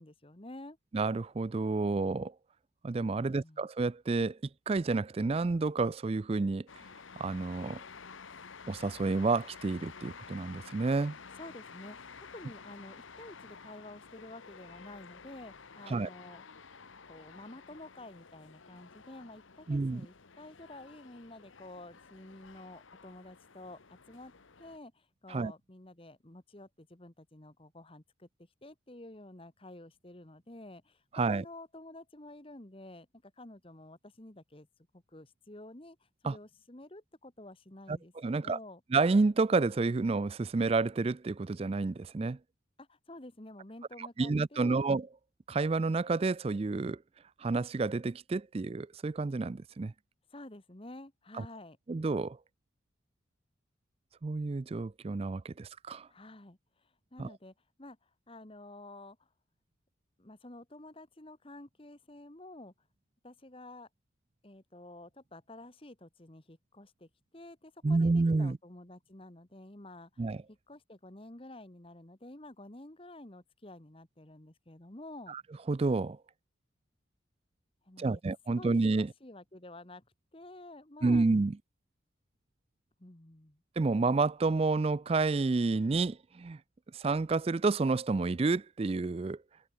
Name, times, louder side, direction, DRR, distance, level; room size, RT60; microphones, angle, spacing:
voice 1, 0.0-0.8 3.2-3.6 11.3-16.4 17.1-23.8 24.1-24.3 24.6-28.3 28.6-34.7 34.9-38.8 42.8-44.8 50.3-51.8 56.1-59.3 60.2-62.7 63.2-63.9 64.4-75.4 77.8-78.2 78.5-80.0 80.3-81.3 83.0-83.6, left 1 dB, 25° left, 1.4 m, -50 dB
voice 2, 0.9-2.3 2.8-4.4 4.7-6.7 7.2-7.8 8.7-11.2 15.9-16.1 19.7-20.1 25.3-25.5 31.1-31.4 36.2-36.4 37.9-38.6 38.9-42.4 44.0-45.1 45.5-47.0 47.4-49.9 51.9-52.4 54.2-56.1 57.2-57.3 67.8-68.6 70.2-70.4 75.3-75.4 75.7-76.2 78.0-79.1 81.0-81.6 83.8-86.6 86.9-89.4, right 3 dB, 30° right, 0.3 m, -29 dB
sound 1, 6.7-24.8, left 5 dB, 75° left, 1.3 m, -51 dB
head